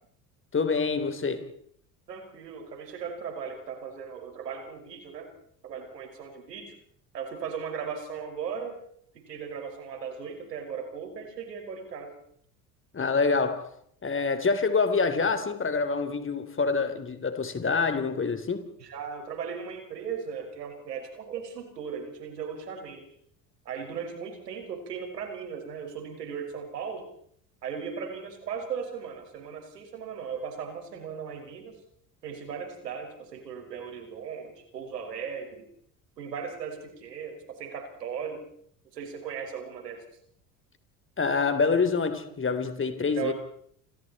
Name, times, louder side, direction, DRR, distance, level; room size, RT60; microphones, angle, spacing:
voice 1, 0.5-1.5 12.9-13.7 14.0-18.7 41.2-43.3, left 4 dB, 25° left, 3.7 m, -26 dB
voice 2, 2.1-5.3 5.6-6.8 7.1-8.8 9.1-12.2 18.8-23.1 23.7-27.1 27.6-31.8 32.2-35.7 36.2-38.4 38.9-40.0 43.2-43.3, right 6 dB, 80° right, 5.6 m, -37 dB
29.5 x 25.5 x 4.3 m
hypercardioid pair, 65°, 47 cm